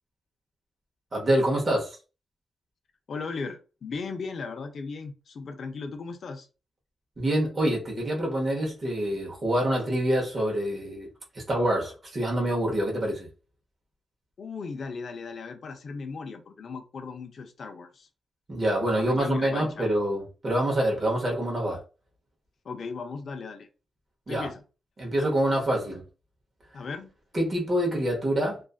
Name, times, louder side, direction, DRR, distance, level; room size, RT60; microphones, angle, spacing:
voice 1, 1.1-2.0 7.2-11.1 11.3-13.3 18.5-21.8 24.3-24.5 25.0-26.0 27.3-28.6, right 1 dB, 25° right, 0.9 m, -26 dB
voice 2, 3.1-6.5 14.4-18.1 19.0-19.9 22.6-23.7 24.3-24.6 26.7-27.1, left 4 dB, 50° left, 0.5 m, -37 dB
2.5 x 2.4 x 2.3 m
wide cardioid pair, 155°, 0 cm